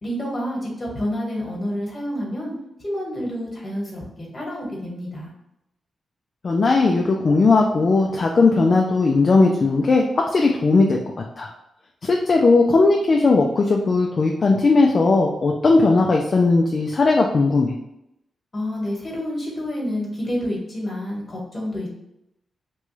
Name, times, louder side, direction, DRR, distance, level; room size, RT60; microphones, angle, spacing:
voice 1, 0.0-2.5 2.8-5.3 18.5-21.9, equal, 30° left, -3 dB, 1.2 m, -28 dB
voice 2, 6.4-11.0 11.4-11.5 12.0-17.7, left 3 dB, 45° left, 0 dB, 0.4 m, -17 dB
3.0 x 2.3 x 3.1 m, 0.82 s
cardioid pair, 105°, 0 cm